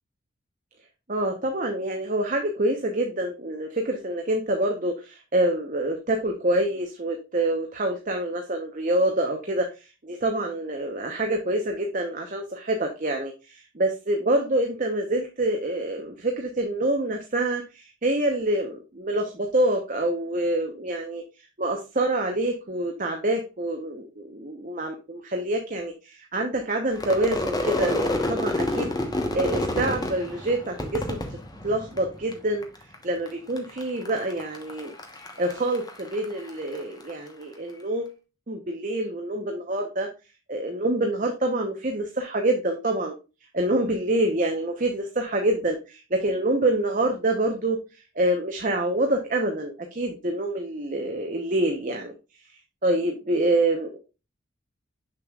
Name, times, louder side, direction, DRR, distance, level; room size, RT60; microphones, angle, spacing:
voice 1, 1.1-21.2 21.6-28.9 29.3-31.2 31.6-32.7 33.0-34.9 35.4-38.1 38.5-40.1 40.5-43.1 43.5-47.8 48.1-52.1 52.8-54.0, right 1 dB, 40° right, 3 dB, 0.9 m, -26 dB
Crowd / Fireworks, 26.9-32.3 32.6-33.3 33.6-37.1, left 1 dB, 20° left, 1.1 m, -29 dB
6.7 x 6.5 x 2.4 m, 0.29 s
head